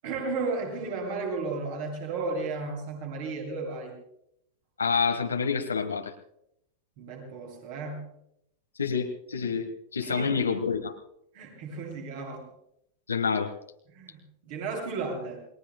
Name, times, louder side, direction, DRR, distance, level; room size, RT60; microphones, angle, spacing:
voice 1, 0.0-3.9 7.0-8.1 10.0-10.3 11.3-12.5 13.9-15.4, right 3 dB, 50° right, 1 dB, 7.8 m, -34 dB
voice 2, 4.8-6.1 8.8-11.0 13.1-13.5, left 5 dB, 75° left, 4 dB, 1.4 m, -28 dB
29.0 x 21.0 x 2.2 m, 0.75 s
figure-of-eight pair, 90°, 0 cm